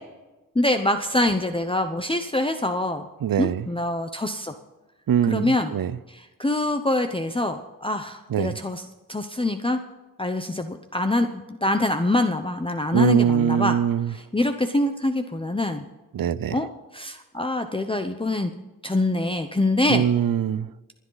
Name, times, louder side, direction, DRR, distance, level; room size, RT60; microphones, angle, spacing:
voice 1, 0.5-3.1 3.4-4.5 5.3-5.7 6.1-8.8 9.1-9.8 10.2-13.8 14.3-15.8 16.5-18.5 18.8-20.0, left 1 dB, 15° left, 7 dB, 0.7 m, -24 dB
voice 2, 3.2-3.7 5.1-6.0 8.3-8.6 12.9-14.1 16.1-16.6 19.9-20.7, right 9 dB, 90° right, 18 dB, 0.6 m, -22 dB
27.0 x 10.0 x 4.0 m, 1.1 s
wide cardioid pair, 115°, 34 cm